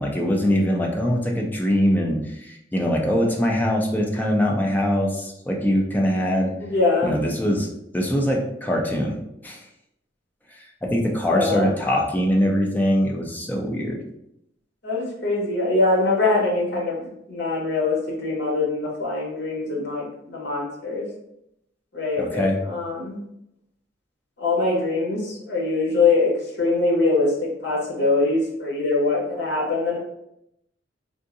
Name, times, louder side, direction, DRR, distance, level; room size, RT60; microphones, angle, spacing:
voice 1, 0.0-6.5 7.0-7.7 7.9-9.2 9.4-9.6 10.5-14.0 22.2-22.6, equal, 10° left, 0 dB, 0.5 m, -22 dB
voice 2, 6.6-7.1 11.3-11.7 14.8-21.1 21.9-23.2 24.4-26.3 26.6-30.0, left 3 dB, 65° left, -3 dB, 1.2 m, -23 dB
3.7 x 2.5 x 2.6 m, 0.79 s
head